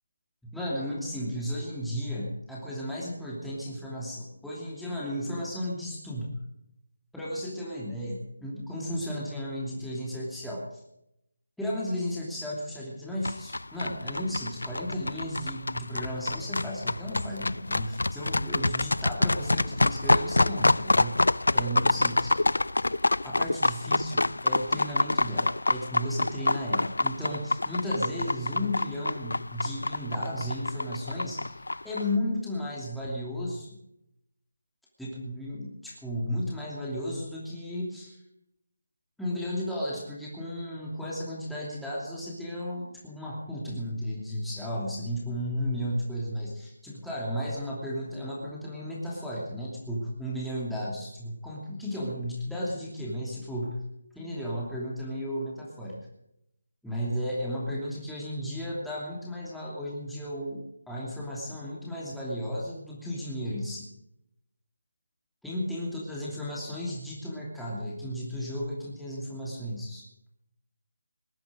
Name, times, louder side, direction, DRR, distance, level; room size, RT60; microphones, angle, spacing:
voice 1, 0.4-6.4 7.1-10.8 11.6-21.2 21.5-22.3 23.2-33.7 35.0-38.2 39.2-53.8 54.1-56.0 56.8-63.9 65.4-70.0, equal, ahead, -7 dB, 2.8 m, -34 dB
sound 1, 13.2-32.0, left 2 dB, 85° left, 0.4 m, -27 dB
20.5 x 10.5 x 5.2 m, 0.81 s
figure-of-eight pair, 160°, 0 cm